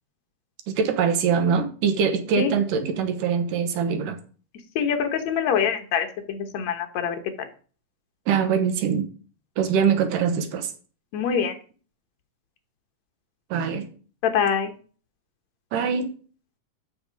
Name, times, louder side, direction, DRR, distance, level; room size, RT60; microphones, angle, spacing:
voice 1, 0.7-4.2 8.3-9.1 9.6-10.7 13.5-13.9 15.7-16.1, right 6 dB, 90° right, 2.7 m, -23 dB
voice 2, 4.8-7.5 11.1-11.5 14.2-14.7, left 7 dB, 65° left, 2.3 m, -24 dB
8.0 x 6.5 x 5.1 m
omnidirectional pair, 3.7 m